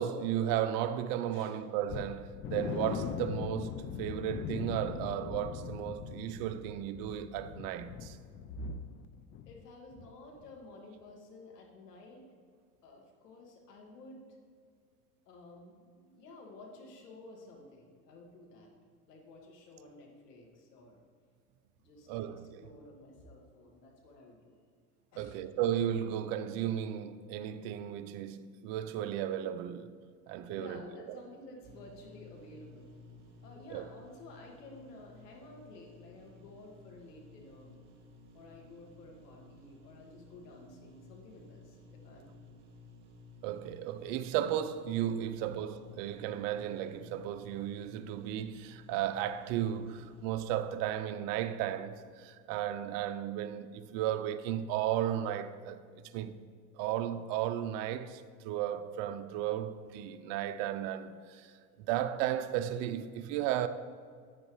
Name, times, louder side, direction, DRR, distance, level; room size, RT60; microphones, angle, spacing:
voice 1, 0.0-8.2 22.1-22.7 25.2-29.9 30.3-30.8 33.7-33.9 43.4-55.8 56.1-56.3 56.7-61.5 61.8-63.7, right 11 dB, 60° right, 0.7 m, -34 dB
sound 1, 1.9-9.7 9.9-10.1 10.5-10.6, left 8 dB, 30° left, 0.4 m, -41 dB
voice 2, 9.5-12.2 12.8-14.2 15.3-18.7 19.1-21.0 21.8-22.3 22.6-24.6 25.1-25.4 30.5-32.9 33.4-37.8 38.3-42.4 45.2-45.3, left 2 dB, 85° left, 2.2 m, -52 dB
sound 2, 31.6-50.4, left 2 dB, 35° right, 2.4 m, -55 dB
10.0 x 9.2 x 3.2 m
hypercardioid pair, 90°, 47 cm